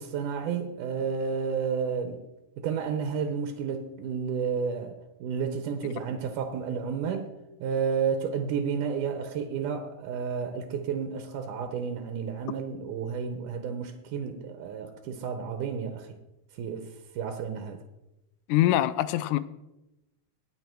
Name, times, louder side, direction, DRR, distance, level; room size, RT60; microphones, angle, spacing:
voice 1, 0.0-2.2 2.6-7.3 7.6-16.2 16.6-17.8, right 6 dB, 85° right, 2.5 m, -31 dB
voice 2, 18.5-19.4, left 14 dB, 85° left, 2.1 m, -23 dB
19.0 x 7.0 x 4.6 m
omnidirectional pair, 3.6 m